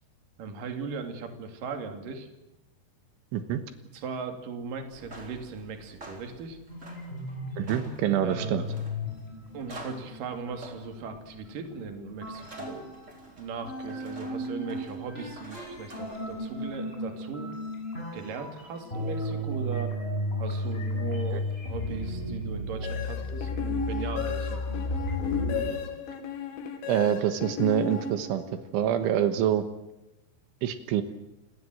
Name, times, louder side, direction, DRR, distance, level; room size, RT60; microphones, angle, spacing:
voice 1, 0.4-2.3 3.9-6.6 8.2-8.7 9.5-12.9 13.4-17.5 18.1-20.0 20.4-24.6, right 5 dB, 50° right, 6 dB, 3.8 m, -38 dB
sound 1, 4.9-16.7, right 2 dB, 15° right, 3.8 m, -49 dB
sound 2, 6.7-13.3 13.6-25.7, left 1 dB, 10° left, 7.7 m, -34 dB
voice 2, 7.6-8.6 26.9-28.4 28.7-29.7 30.6-31.0, right 10 dB, 85° right, 9 dB, 3.7 m, -26 dB
sound 3, 22.8-28.7, left 6 dB, 75° left, 4.8 m, -34 dB
29.5 x 18.5 x 7.8 m, 0.94 s
omnidirectional pair, 5.5 m